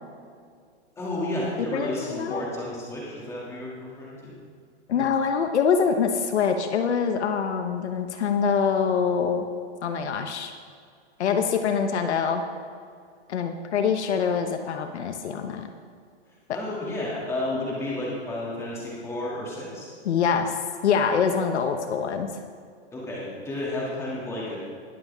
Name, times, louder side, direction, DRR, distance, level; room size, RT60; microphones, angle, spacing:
voice 1, 1.0-4.3 16.5-19.9 22.9-24.6, left 1 dB, 10° left, -5 dB, 2.6 m, -32 dB
voice 2, 1.7-2.4 4.9-9.5 9.8-10.5 11.2-12.4 13.3-15.7 16.5-16.6 20.0-20.5 20.8-22.4, left 6 dB, 70° left, 6 dB, 1.1 m, -24 dB
20.5 x 7.2 x 3.6 m, 2.1 s
hypercardioid pair, 160°, 35 cm